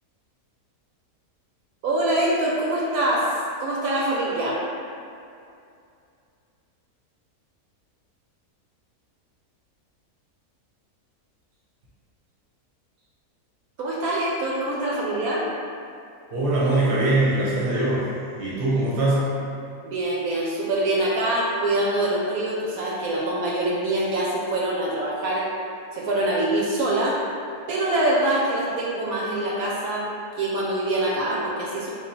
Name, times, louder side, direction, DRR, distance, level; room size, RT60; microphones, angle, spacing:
voice 1, 1.8-3.3 3.6-4.6 13.8-15.4 19.8-25.5 25.9-27.2 27.7-30.1 30.4-31.9, right 1 dB, 75° right, -5 dB, 1.0 m, -24 dB
voice 2, 16.3-18.1 18.4-19.4, right 2 dB, 45° right, -7 dB, 0.9 m, -22 dB
3.1 x 2.4 x 4.1 m, 2.5 s
omnidirectional pair, 1.6 m